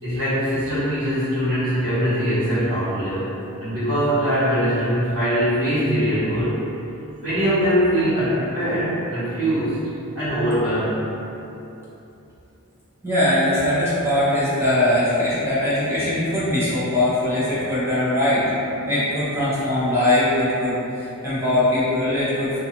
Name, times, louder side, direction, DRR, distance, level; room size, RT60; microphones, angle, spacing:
voice 1, 0.0-6.6 7.2-9.8 10.1-11.0, equal, 60° right, -16 dB, 1.0 m, -22 dB
voice 2, 13.0-18.4 18.8-22.6, left 1 dB, 10° right, -11 dB, 0.5 m, -21 dB
2.5 x 2.3 x 2.8 m, 2.9 s
head